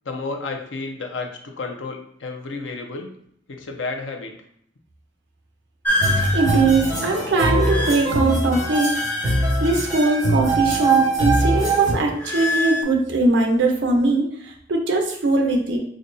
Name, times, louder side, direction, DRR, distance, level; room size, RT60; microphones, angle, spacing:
voice 1, 0.0-3.1 3.5-4.4 11.5-11.6, left 3 dB, 80° left, 3 dB, 0.6 m, -31 dB
sound 1, 5.8-10.6 10.9-12.8, left 1 dB, 10° left, 0.4 m, -28 dB
sound 2, 6.0-11.9, right 2 dB, 15° right, 1.4 m, -22 dB
voice 2, 6.1-9.0 9.6-15.8, right 2 dB, 70° right, 1 dB, 0.7 m, -21 dB
4.9 x 2.2 x 2.6 m, 0.68 s
head